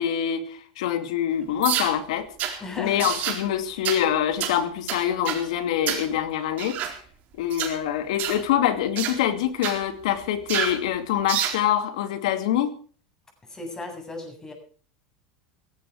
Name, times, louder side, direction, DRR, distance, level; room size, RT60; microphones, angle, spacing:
voice 1, 0.0-6.8 7.4-12.7, left 10 dB, 80° left, 10 dB, 2.5 m, -25 dB
sound 1, 1.6-1.9 2.4-2.6 3.0-3.4 3.8-4.0 4.4-4.6 4.9-5.4 5.9-6.1 6.6-6.9 7.5-7.7 8.2-8.4 9.0-9.2 9.6-9.8 10.5-10.8 11.3-11.6, right 10 dB, 50° right, 4.4 m, -28 dB
voice 2, 2.6-3.1 13.5-14.5, left 2 dB, 15° left, 3 dB, 7.9 m, -36 dB
17.5 x 16.0 x 4.8 m, 0.42 s
supercardioid pair, 110°, 3 cm